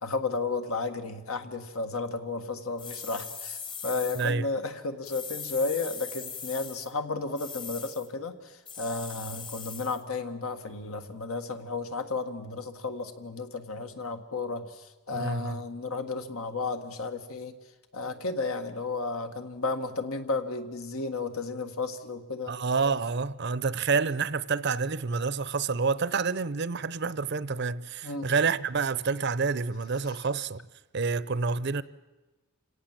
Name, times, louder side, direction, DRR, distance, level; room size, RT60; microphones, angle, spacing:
voice 1, 0.0-17.5 17.9-22.5 28.0-28.3 30.0-30.2, left 3 dB, 80° left, 1.8 m, -33 dB
sound 1, 2.8-4.3 5.0-6.9 7.4-8.1 8.7-10.0, left 6 dB, 25° left, 1.1 m, -40 dB
voice 2, 15.1-15.6 22.5-30.6 30.9-31.8, right 4 dB, 50° right, 0.6 m, -28 dB
28.5 x 17.5 x 7.5 m
head